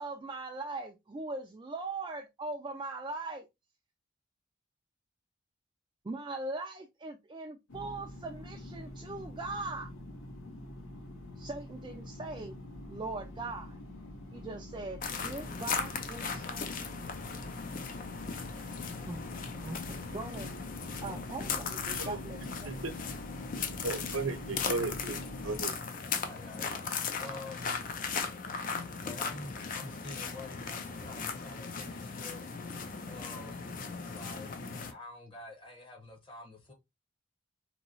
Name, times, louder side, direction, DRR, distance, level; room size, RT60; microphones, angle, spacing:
voice 1, 0.0-3.5 6.0-9.9 11.4-12.6 12.9-13.8 14.3-16.6 19.1-19.2 19.6-20.5 21.0-22.9, right 3 dB, 25° right, 0.3 m, -40 dB
sound 1, 7.7-25.6, left 1 dB, 80° left, 0.7 m, -45 dB
sound 2, 15.0-34.9, left 5 dB, 40° left, 0.4 m, -38 dB
voice 2, 23.8-25.7, right 3 dB, 80° right, 0.7 m, -35 dB
voice 3, 26.2-27.8 29.0-32.4 33.1-33.7 34.0-34.6 34.9-36.7, left 2 dB, 25° left, 0.9 m, -47 dB
3.0 x 2.7 x 2.5 m
head